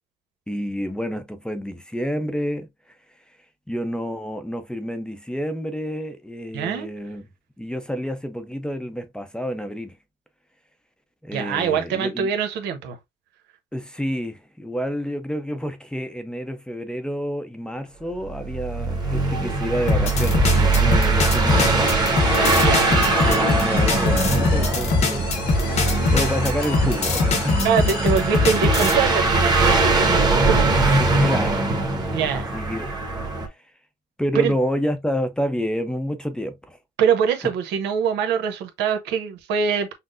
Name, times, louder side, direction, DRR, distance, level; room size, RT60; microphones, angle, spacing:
voice 1, 0.5-3.0 3.3-3.4 3.7-7.3 7.6-10.0 11.2-12.3 13.7-22.0 23.1-27.7 31.0-31.7 32.3-32.9 33.5-33.7 34.2-36.8, equal, 5° left, 0.6 m, -29 dB
voice 2, 6.5-6.9 11.3-13.0 22.6-22.9 27.6-30.2 30.5-30.6 32.1-32.5 34.3-34.5 37.0-39.9, right 7 dB, 90° right, 0.9 m, -23 dB
sound 1, 18.3-33.5, right 2 dB, 25° right, 1.2 m, -21 dB
sound 2, 19.9-29.0, left 3 dB, 40° left, 0.9 m, -22 dB
sound 3, 21.5-28.8, left 6 dB, 75° left, 1.4 m, -34 dB
5.9 x 2.0 x 2.5 m
cardioid pair, 110°, 17 cm